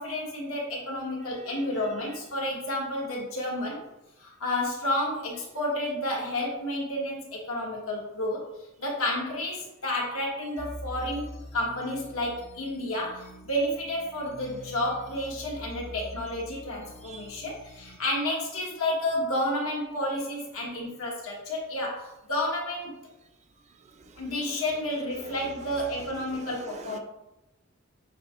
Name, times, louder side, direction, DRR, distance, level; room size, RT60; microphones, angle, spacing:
voice 1, 0.0-3.8 4.2-8.4 8.8-23.0 24.2-27.0, left 1 dB, 80° left, -2 dB, 1.2 m, -31 dB
voice 2, 1.2-2.2 5.8-5.9 17.0-17.3 23.6-24.6 25.1-27.0, right 4 dB, 30° right, 6 dB, 0.3 m, -47 dB
sound 1, 10.6-18.0, left 1 dB, 30° left, 0.5 m, -45 dB
6.4 x 2.7 x 2.4 m, 0.93 s
head